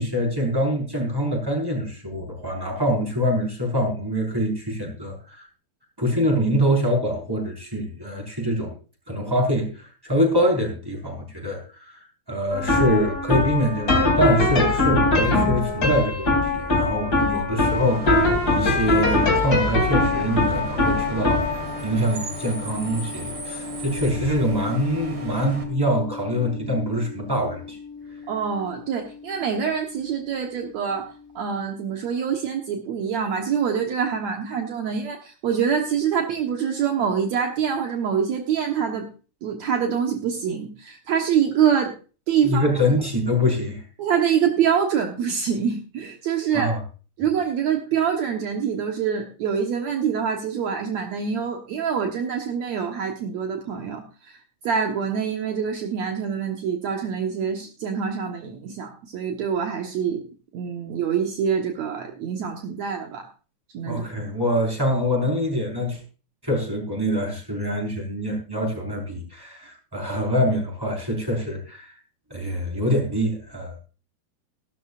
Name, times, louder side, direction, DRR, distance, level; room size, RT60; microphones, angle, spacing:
voice 1, 0.0-5.5 6.0-8.7 9.1-11.6 11.9-12.0 12.3-27.8 42.4-43.8 46.5-46.8 63.8-66.0 66.4-71.9 72.3-73.7, equal, 5° right, 1 dB, 4.5 m, -24 dB
sound 1, 12.5-29.7, left 2 dB, 25° left, 3.0 m, -24 dB
Bus / Idling / Screech, 17.6-25.6, right 1 dB, 35° right, 2.1 m, -36 dB
voice 2, 28.3-39.1 39.4-41.9 42.3-42.7 44.0-46.7 47.2-54.4 54.6-60.2 60.5-63.3 63.7-64.0, right 7 dB, 75° right, 3 dB, 1.6 m, -25 dB
17.5 x 12.5 x 2.5 m, 0.35 s
omnidirectional pair, 5.0 m